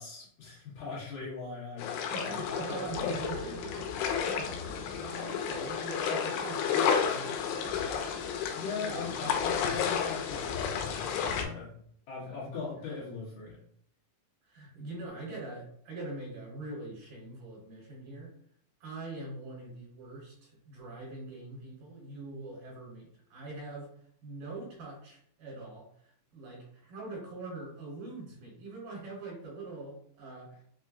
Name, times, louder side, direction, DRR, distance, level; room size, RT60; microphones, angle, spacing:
voice 1, 0.0-1.9 2.2-3.1 8.5-11.7 12.1-13.6, left 4 dB, 65° left, -6 dB, 2.2 m, -40 dB
sound 1, 1.8-11.5, left 7 dB, 90° left, 2.4 m, -32 dB
voice 2, 2.1-8.2 8.8-9.3 12.2-12.5 14.5-18.3 18.8-23.9 24.2-30.7, right 2 dB, 70° right, -4 dB, 2.5 m, -43 dB
5.9 x 2.1 x 2.5 m, 0.65 s
omnidirectional pair, 4.2 m